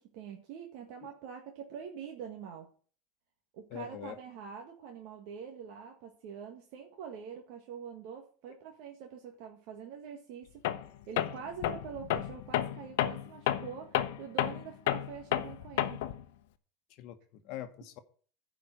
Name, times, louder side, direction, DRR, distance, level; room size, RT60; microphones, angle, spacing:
voice 1, 0.1-2.7 3.5-16.0, right 7 dB, 65° right, 1.7 m, -45 dB
voice 2, 3.7-4.2 16.9-18.0, left 11 dB, 55° left, 1.2 m, -43 dB
Tools, 10.6-10.9 11.2-16.2, left 12 dB, 80° left, 0.8 m, -31 dB
10.5 x 5.0 x 7.9 m
supercardioid pair, 130°, 0 cm